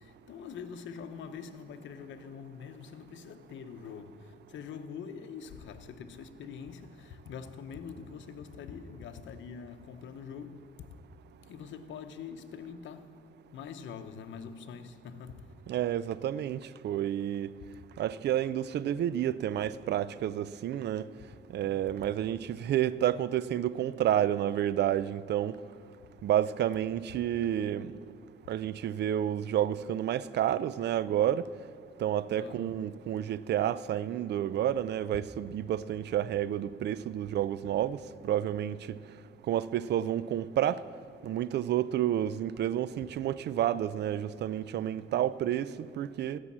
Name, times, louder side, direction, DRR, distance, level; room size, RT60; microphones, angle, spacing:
voice 1, 0.0-10.9 11.4-13.2 13.5-15.5 21.6-21.9 32.3-32.8, left 6 dB, 70° left, 0.8 m, -44 dB
voice 2, 15.7-17.5 18.0-21.1 21.5-25.5 26.2-27.9 28.5-31.4 32.0-38.0 38.2-38.8 39.5-40.8 41.2-46.4, right 11 dB, 60° right, 0.4 m, -30 dB
15.0 x 6.4 x 7.3 m
cardioid pair, 90°, 20 cm